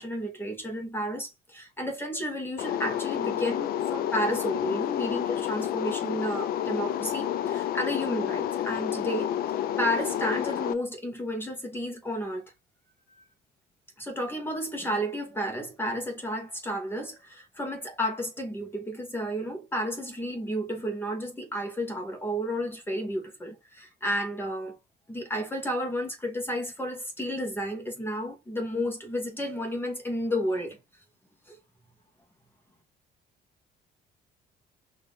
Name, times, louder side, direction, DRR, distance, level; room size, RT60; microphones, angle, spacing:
voice 1, 0.0-9.3 9.8-12.4 14.0-24.8 25.1-30.8 31.5-31.6, equal, 15° left, 1.6 m, -32 dB
sound 1, 2.6-10.7, left 11 dB, 65° left, 0.5 m, -30 dB
4.6 x 3.0 x 3.6 m
cardioid pair, 110°, 17 cm